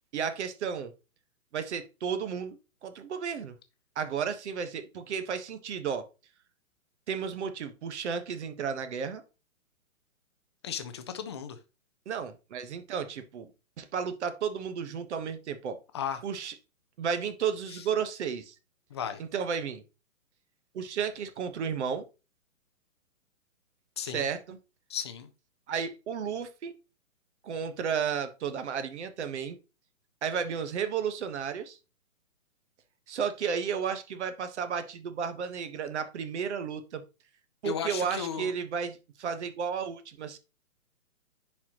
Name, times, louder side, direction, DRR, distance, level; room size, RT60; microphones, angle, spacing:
voice 1, 0.1-0.9 1.5-2.6 2.8-3.5 4.0-6.0 7.1-9.2 12.1-13.5 13.8-15.8 16.2-16.5 17.0-18.5 19.3-19.8 20.7-22.0 24.1-24.6 25.7-26.7 27.4-29.6 30.2-31.8 33.1-37.0 37.6-40.4, right 7 dB, 50° right, 10 dB, 1.3 m, -33 dB
voice 2, 10.6-11.6 15.9-16.2 17.7-17.8 18.9-19.2 24.0-24.3 24.9-25.3 37.6-38.5, left 8 dB, 20° left, 9 dB, 0.4 m, -35 dB
10.0 x 4.4 x 2.9 m, 0.30 s
hypercardioid pair, 140°, 43 cm